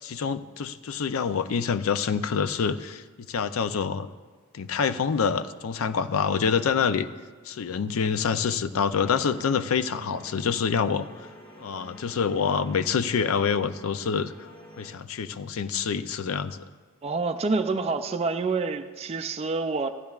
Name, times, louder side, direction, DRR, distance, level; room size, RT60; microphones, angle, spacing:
voice 1, 0.0-4.1 4.5-7.1 7.4-11.1 11.6-14.3 14.8-16.6, left 6 dB, 75° left, 12 dB, 0.5 m, -26 dB
sound 1, 8.9-14.9, equal, 25° left, 1.6 m, -49 dB
voice 2, 17.0-19.9, right 4 dB, 30° right, 6 dB, 0.4 m, -27 dB
15.5 x 12.0 x 2.4 m, 1.5 s
head